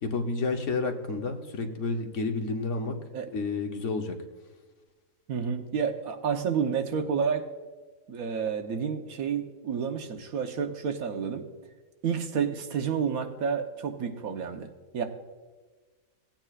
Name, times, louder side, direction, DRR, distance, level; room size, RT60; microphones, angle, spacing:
voice 1, 0.0-3.0 3.3-4.1, left 3 dB, 60° left, 4 dB, 1.2 m, -30 dB
voice 2, 5.3-7.4 8.1-11.4 12.0-15.0, right 6 dB, 80° right, 6 dB, 1.3 m, -30 dB
17.0 x 8.9 x 2.4 m, 1.3 s
omnidirectional pair, 1.5 m